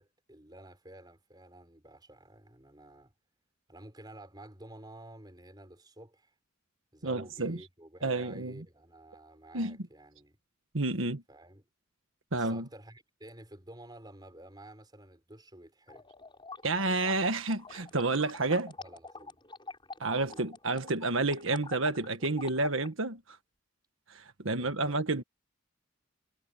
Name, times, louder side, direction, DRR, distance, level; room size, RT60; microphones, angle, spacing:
voice 1, 0.0-3.1 3.7-6.3 6.9-10.4 11.3-11.6 12.3-16.1 18.8-19.4 20.2-20.4 24.5-25.0, right 1 dB, 20° right, 4.7 m, -51 dB
voice 2, 7.0-7.6 8.0-8.6 9.5-9.8 10.7-11.2 12.3-12.6 16.6-18.7 20.0-23.2 24.1-25.2, right 2 dB, 85° right, 1.6 m, -30 dB
sound 1, 15.9-22.9, left 3 dB, 25° left, 7.1 m, -47 dB
head